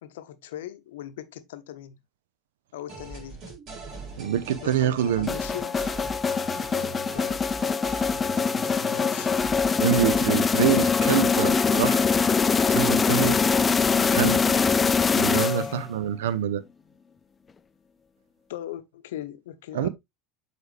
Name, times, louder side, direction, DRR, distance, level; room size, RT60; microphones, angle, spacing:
voice 1, 0.0-2.0 2.7-3.4 4.6-5.8 6.7-9.6 13.1-13.6 14.5-14.7 15.3-15.9 18.5-19.9, left 12 dB, 65° left, 0.7 m, -40 dB
sound 1, 2.9-11.2, right 3 dB, 45° right, 4.5 m, -41 dB
voice 2, 4.2-5.4 9.8-12.0 12.7-13.3 13.9-14.4 15.2-16.6 19.7-19.9, right 10 dB, 65° right, 0.7 m, -25 dB
sound 2, 5.3-15.9, left 5 dB, 20° left, 0.4 m, -23 dB
8.0 x 4.9 x 3.2 m
figure-of-eight pair, 75°, 0 cm